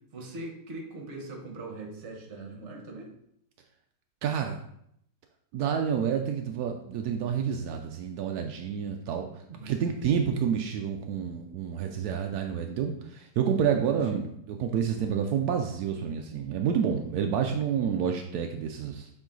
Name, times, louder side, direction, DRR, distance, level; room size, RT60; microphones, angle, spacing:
voice 1, 0.1-3.1 9.5-10.3 13.7-14.2, right 2 dB, 40° right, 1 dB, 1.3 m, -41 dB
voice 2, 4.2-4.6 5.5-19.1, right 7 dB, 75° right, 4 dB, 0.8 m, -29 dB
7.3 x 3.8 x 3.8 m, 0.73 s
omnidirectional pair, 2.1 m